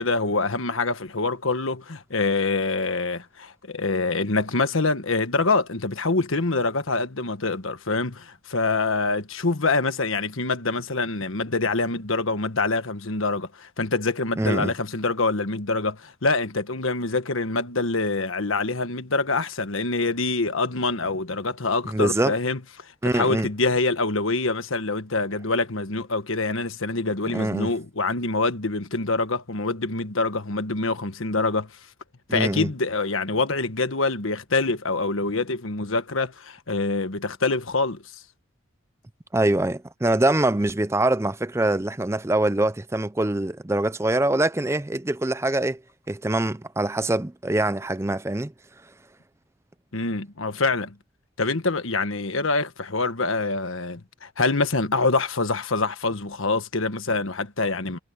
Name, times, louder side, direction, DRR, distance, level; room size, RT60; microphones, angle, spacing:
voice 1, 0.0-31.7 32.3-38.0 49.9-50.9 51.4-58.0, left 3 dB, 85° left, 1.5 m, -25 dB
voice 2, 14.4-14.7 21.9-22.3 23.0-23.5 27.3-27.7 32.3-32.7 39.3-45.8 46.1-48.5, right 1 dB, 15° right, 0.5 m, -24 dB
head